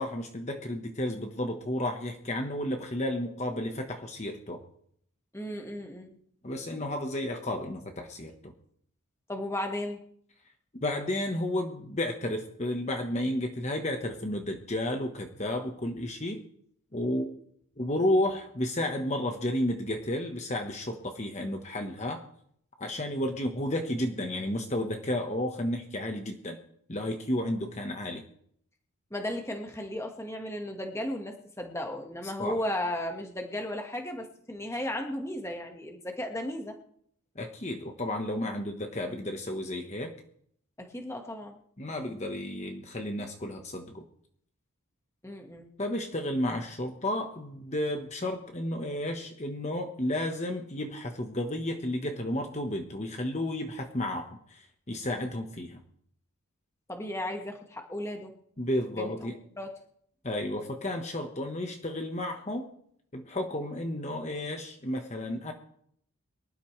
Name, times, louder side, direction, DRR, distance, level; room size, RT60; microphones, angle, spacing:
voice 1, 0.0-4.6 6.4-8.5 10.8-16.4 16.9-17.3 17.8-22.2 22.8-26.6 26.9-28.2 32.4-32.6 37.4-40.1 41.8-44.0 45.8-55.8 58.6-59.4 60.2-62.7 63.1-65.5, left 1 dB, 30° left, 4 dB, 1.2 m, -32 dB
voice 2, 5.3-6.2 9.3-10.0 29.1-36.7 40.8-41.5 45.2-45.7 56.9-58.3 58.9-59.3 59.6-59.7, left 1 dB, 10° left, 3 dB, 1.4 m, -35 dB
24.0 x 12.0 x 3.2 m, 0.66 s
head